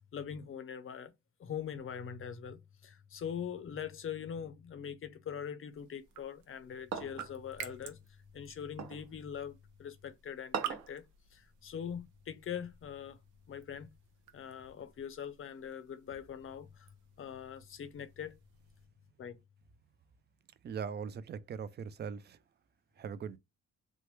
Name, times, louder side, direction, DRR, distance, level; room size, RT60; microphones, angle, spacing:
voice 1, 0.1-1.1 1.4-8.0 8.3-11.1 11.3-13.2 13.5-13.9 14.3-18.4 19.2-19.4, left 8 dB, 45° left, 0.6 m, -42 dB
sound 1, 5.7-18.9, right 10 dB, 90° right, 0.6 m, -51 dB
sound 2, 6.9-7.3 8.8-9.1 10.5-11.0, right 6 dB, 60° right, 0.9 m, -39 dB
voice 2, 20.6-22.4 23.0-23.4, right 6 dB, 35° right, 0.4 m, -40 dB
3.1 x 2.1 x 3.1 m
cardioid pair, 90°, 30 cm